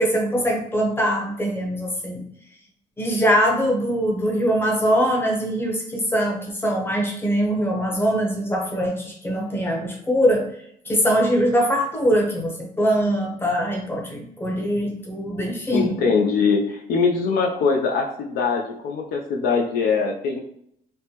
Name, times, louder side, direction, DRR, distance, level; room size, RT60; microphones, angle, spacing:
voice 1, 0.0-2.2 3.0-10.4 10.8-16.0, equal, 15° left, 0 dB, 0.8 m, -22 dB
voice 2, 15.7-20.4, left 5 dB, 65° left, 2 dB, 0.5 m, -22 dB
3.3 x 2.1 x 2.8 m, 0.70 s
cardioid pair, 110°, 17 cm